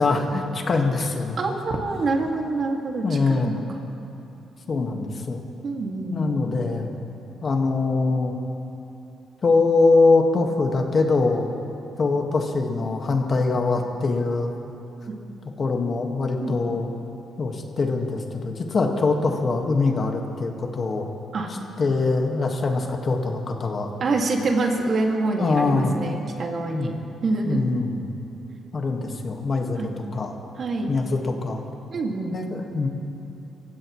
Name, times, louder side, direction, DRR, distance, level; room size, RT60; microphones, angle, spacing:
voice 1, 0.0-1.4 3.0-3.6 4.7-5.4 6.1-6.9 7.4-8.3 9.4-11.5 12.0-14.5 15.6-16.9 17.4-21.1 21.8-23.9 25.4-25.9 26.7-26.9 27.5-28.1 28.7-30.3 30.9-31.6 32.3-32.9, left 3 dB, 45° left, 2 dB, 1.7 m, -23 dB
voice 2, 1.4-3.6 5.6-6.4 16.4-16.5 21.3-21.5 24.0-26.9 27.2-27.6 29.8-29.9 30.6-30.9 31.9-32.3, right 3 dB, 50° right, 1 dB, 2.2 m, -26 dB
26.0 x 16.0 x 3.2 m, 2.9 s
cardioid pair, 90°, 0 cm